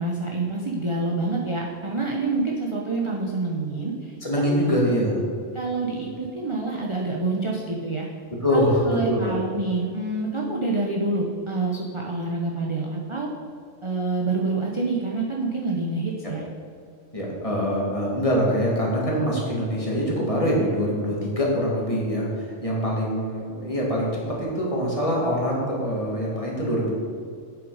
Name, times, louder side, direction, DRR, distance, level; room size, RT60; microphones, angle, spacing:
voice 1, 0.0-4.1 4.6-4.7 5.5-8.1 8.5-13.3 13.8-16.4, right 3 dB, 30° right, -2 dB, 0.7 m, -27 dB
voice 2, 4.2-5.1 5.9-6.1 8.4-9.3 16.2-16.3 17.1-26.9, equal, 25° left, -4 dB, 2.1 m, -24 dB
8.5 x 7.2 x 4.8 m, 2.3 s
omnidirectional pair, 1.4 m